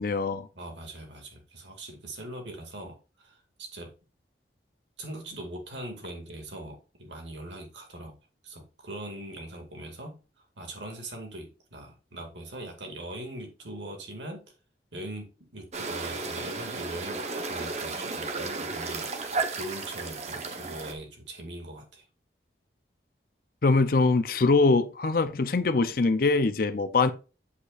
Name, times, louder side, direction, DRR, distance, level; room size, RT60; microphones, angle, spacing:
voice 1, 0.0-0.5 23.6-27.1, left 3 dB, 55° left, 0.6 m, -23 dB
voice 2, 0.5-3.9 5.0-8.2 8.4-10.2 10.6-14.4 14.9-22.0, right 1 dB, 85° right, 2.2 m, -41 dB
sound 1, 15.7-20.9, right 4 dB, 40° right, 1.0 m, -33 dB
8.2 x 8.0 x 2.5 m
head